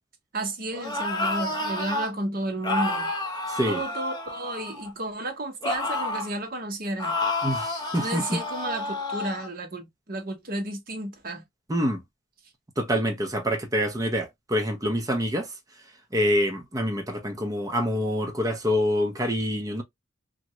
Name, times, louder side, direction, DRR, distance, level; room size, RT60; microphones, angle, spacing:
voice 1, 0.3-3.1 3.7-7.2 7.9-11.4, right 1 dB, 45° right, 0.9 m, -32 dB
sound 1, 0.7-2.1 2.6-4.9 5.6-6.3 7.0-9.5, left 2 dB, 20° left, 0.7 m, -30 dB
voice 2, 3.5-3.8 7.4-8.3 11.7-12.0 12.8-15.5 16.1-19.8, equal, 15° right, 0.7 m, -26 dB
2.8 x 2.5 x 2.9 m
head